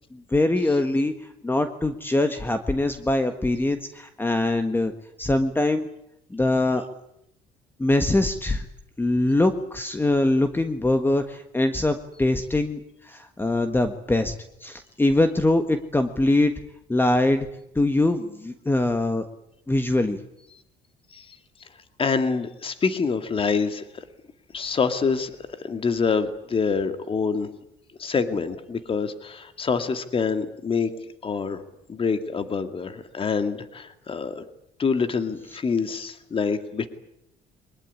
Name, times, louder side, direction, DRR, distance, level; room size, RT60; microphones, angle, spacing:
voice 1, 0.1-4.9 5.2-5.9 6.3-6.8 7.8-8.6 9.0-14.3 14.6-16.5 16.9-17.5 17.7-19.2 19.7-20.2, left 2 dB, 10° left, 8 dB, 1.5 m, -23 dB
voice 2, 22.0-24.1 24.5-27.5 28.0-30.9 31.2-31.6 31.9-34.4 34.8-36.9, left 5 dB, 30° left, 9 dB, 2.2 m, -26 dB
23.0 x 20.5 x 9.8 m, 0.79 s
cardioid pair, 110°, 17 cm